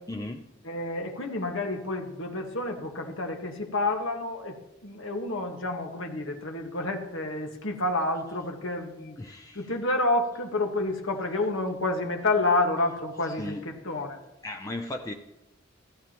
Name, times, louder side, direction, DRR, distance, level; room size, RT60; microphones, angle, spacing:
voice 1, 0.1-0.5 9.2-9.7 13.2-13.9 14.4-15.1, left 1 dB, 20° left, 4 dB, 0.5 m, -36 dB
voice 2, 0.6-4.6 4.8-9.1 9.5-14.2, left 2 dB, 80° left, 3 dB, 1.5 m, -29 dB
14.5 x 14.5 x 3.0 m, 0.92 s
head